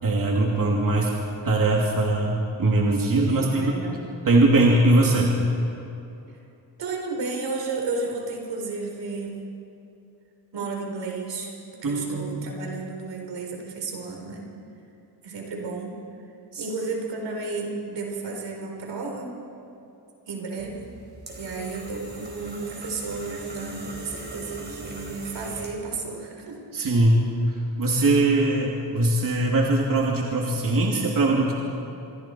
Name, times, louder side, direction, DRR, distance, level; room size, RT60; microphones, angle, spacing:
voice 1, 0.0-1.1 1.4-3.7 4.2-5.3 11.8-12.4 16.5-16.7 26.7-31.5, right 2 dB, 50° right, -2 dB, 2.9 m, -21 dB
voice 2, 3.3-4.1 6.8-9.4 10.5-14.4 15.2-16.0 16.6-19.3 20.3-20.9 21.4-26.6, right 3 dB, 80° right, 0 dB, 4.5 m, -33 dB
sound 1, 20.6-26.0, right 1 dB, 25° right, 4.3 m, -40 dB
27.0 x 23.5 x 4.6 m, 2.8 s
cardioid pair, 115°, 42 cm